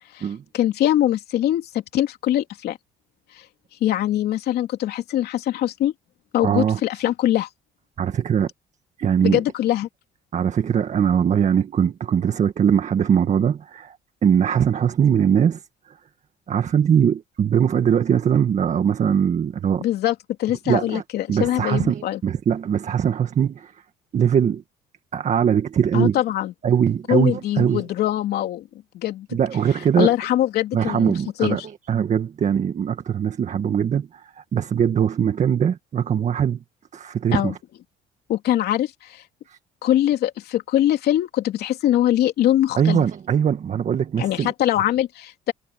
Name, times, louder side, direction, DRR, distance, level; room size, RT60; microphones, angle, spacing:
voice 1, 0.5-2.8 3.8-5.9 6.3-7.5 9.2-9.9 19.8-22.2 25.9-26.5 27.1-28.7 28.9-29.3 30.0-31.1 31.4-31.6 37.3-37.5 38.3-39.2 39.8-43.0 44.2-45.5, left 12 dB, 70° left, 3.1 m, -22 dB
voice 2, 6.4-6.8 8.0-8.5 9.0-9.4 10.3-14.0 14.2-15.6 16.5-19.8 20.7-21.0 21.3-23.7 24.1-24.6 25.1-26.2 26.6-27.8 29.3-30.1 30.7-31.6 31.9-36.6 36.9-37.6 39.5-39.6 42.8-44.5, right 8 dB, 45° right, 1.8 m, -21 dB
cardioid pair, 110°, 17 cm